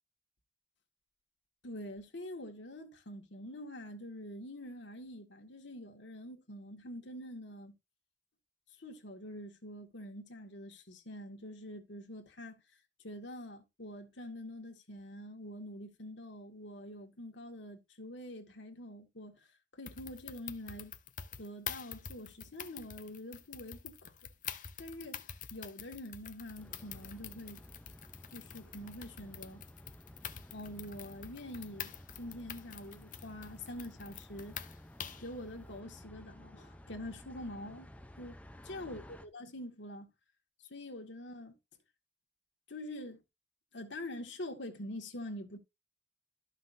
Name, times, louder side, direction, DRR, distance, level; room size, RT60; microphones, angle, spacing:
voice 1, 1.6-7.7 8.8-12.5 13.0-21.0 21.4-24.1 24.8-27.6 28.3-29.6 30.5-31.9 32.2-34.6 35.2-37.9 38.2-38.4 38.7-40.1 40.7-41.5 42.7-43.2 43.7-45.6, left 1 dB, 70° left, 1.8 m, -45 dB
sound 1, 19.9-35.3, left 9 dB, 45° left, 0.7 m, -46 dB
sound 2, 26.6-39.3, equal, 5° left, 0.6 m, -54 dB
13.5 x 5.8 x 2.6 m
head